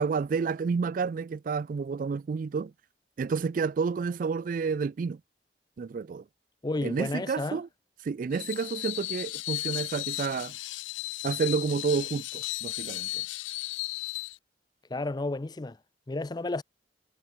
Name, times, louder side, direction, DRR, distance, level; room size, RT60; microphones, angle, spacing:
voice 1, 0.0-2.7 3.2-5.2 5.8-6.2 6.8-7.7 8.0-10.5 11.2-13.1, right 5 dB, 45° right, 0.3 m, -30 dB
voice 2, 6.6-7.6 14.9-15.8 16.1-16.6, left 2 dB, 25° left, 0.5 m, -32 dB
Screech, 8.3-14.4, left 20 dB, 85° left, 0.3 m, -35 dB
head